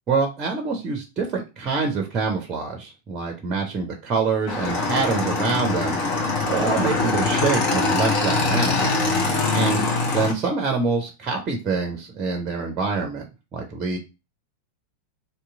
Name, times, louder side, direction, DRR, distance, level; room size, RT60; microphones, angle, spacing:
voice 1, 0.1-6.0 6.5-8.9 9.5-9.8 10.1-13.3 13.5-14.0, right 4 dB, 30° right, 3 dB, 0.7 m, -25 dB
Motorcycle / Engine, 4.5-10.3, left 3 dB, 45° left, 1.1 m, -23 dB
3.0 x 2.7 x 3.5 m, 0.28 s
figure-of-eight pair, 90°, 0 cm